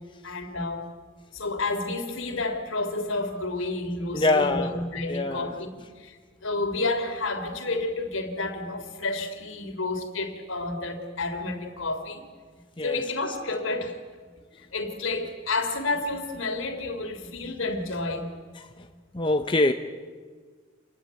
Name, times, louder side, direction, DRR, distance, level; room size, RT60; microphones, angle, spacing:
voice 1, 0.2-0.9 1.3-6.2 6.4-12.3 12.8-14.0 14.7-18.3, left 2 dB, 70° left, 3.5 m, -30 dB
voice 2, 4.1-4.8 5.1-5.5 12.8-13.0 19.1-19.7, left 2 dB, 25° left, 0.9 m, -23 dB
28.0 x 21.5 x 9.2 m
head